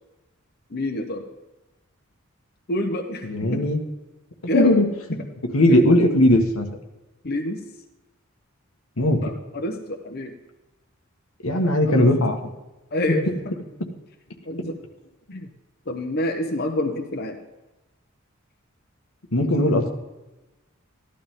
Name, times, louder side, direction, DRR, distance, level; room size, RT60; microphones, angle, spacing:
voice 1, 0.7-1.3 2.7-3.6 4.5-4.8 5.7-5.8 7.2-7.6 9.2-10.3 11.9-12.1 12.9-13.5 14.5-14.8 15.3-15.5 15.9-17.4 19.4-19.6, left 1 dB, 50° left, 4 dB, 1.0 m, -27 dB
voice 2, 3.2-3.8 4.4-5.2 5.5-6.7 9.0-9.3 11.4-12.5 19.3-19.9, left 1 dB, 85° left, 3 dB, 1.6 m, -19 dB
14.5 x 12.0 x 3.7 m, 1.0 s
head